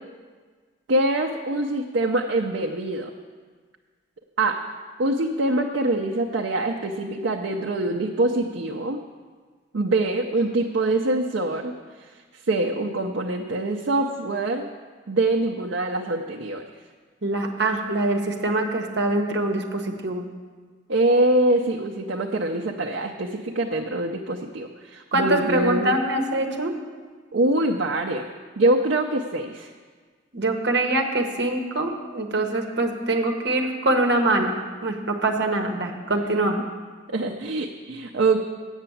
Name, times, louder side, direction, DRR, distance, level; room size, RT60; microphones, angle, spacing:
voice 1, 0.9-3.1 4.4-4.6 5.0-9.0 9.7-11.7 12.5-14.7 15.1-16.6 20.9-26.0 27.3-28.3 28.6-29.7 37.1-38.4, right 2 dB, 75° right, 1 dB, 0.6 m, -24 dB
voice 2, 17.2-20.2 25.1-26.7 30.3-34.5 34.8-36.6, right 2 dB, 60° right, 3 dB, 1.1 m, -24 dB
8.1 x 6.8 x 8.4 m, 1.5 s
head